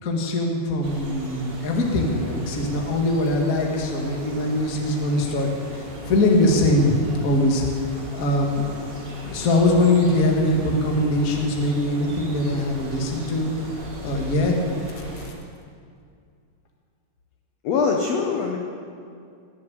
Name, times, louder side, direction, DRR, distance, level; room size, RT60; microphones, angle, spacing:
voice 1, 0.0-5.5 6.1-6.9 7.2-7.6 8.1-8.7 9.2-13.5 14.0-14.6, left 1 dB, 35° left, 0 dB, 1.4 m, -22 dB
sound 1, 0.8-15.3, equal, 60° right, 0.6 m, -38 dB
voice 2, 17.6-18.6, left 5 dB, 65° left, 1 dB, 1.7 m, -22 dB
19.0 x 7.4 x 7.7 m, 2.3 s
omnidirectional pair, 4.1 m